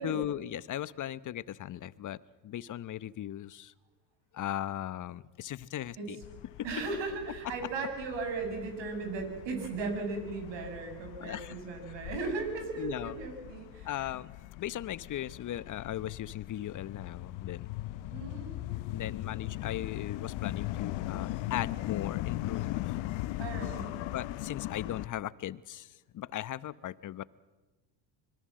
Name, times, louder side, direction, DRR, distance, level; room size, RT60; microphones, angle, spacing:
voice 1, 0.0-3.7 4.3-6.2 11.2-11.5 12.8-13.1 13.8-17.7 18.9-22.9 24.1-27.2, left 12 dB, 40° left, 18 dB, 0.9 m, -38 dB
sound 1, 6.2-25.1, left 16 dB, 65° left, 1.1 m, -39 dB
voice 2, 6.6-14.1 18.1-19.0 23.4-24.0, right 4 dB, 60° right, 5 dB, 7.1 m, -37 dB
25.5 x 22.0 x 7.6 m, 1.2 s
supercardioid pair, 90°, 50 cm